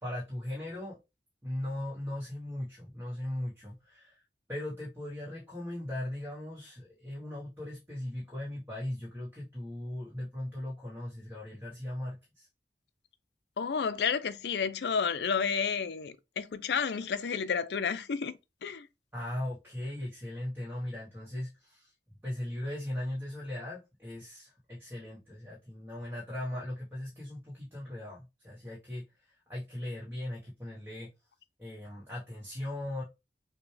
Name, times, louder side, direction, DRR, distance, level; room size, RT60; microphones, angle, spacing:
voice 1, 0.0-1.0 1.4-4.2 4.5-12.5 19.1-21.9 22.2-31.1 31.6-33.0, left 1 dB, 15° right, 1.1 m, -38 dB
voice 2, 13.6-18.9, left 6 dB, 70° left, 0.4 m, -31 dB
6.0 x 2.2 x 3.2 m
head